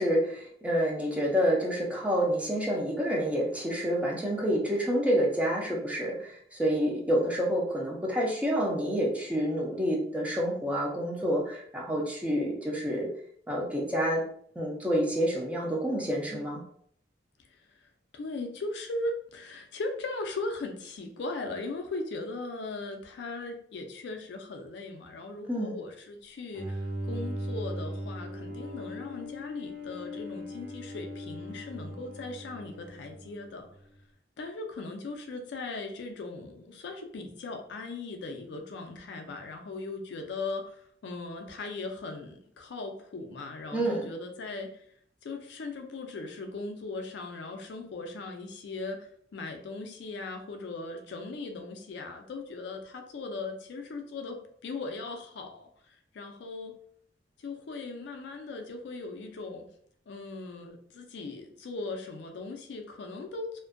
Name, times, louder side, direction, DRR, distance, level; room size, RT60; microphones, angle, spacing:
voice 1, 0.0-13.1 13.5-14.2 14.6-16.6 25.5-25.7 43.7-44.1, equal, 10° right, -2 dB, 0.5 m, -28 dB
voice 2, 18.1-33.7 34.4-44.9 45.2-56.7 57.4-59.7 60.1-63.6, left 3 dB, 65° left, 5 dB, 0.4 m, -38 dB
Bowed string instrument, 26.5-33.8, equal, 60° right, 0.6 m, -39 dB
2.5 x 2.1 x 2.4 m, 0.64 s
head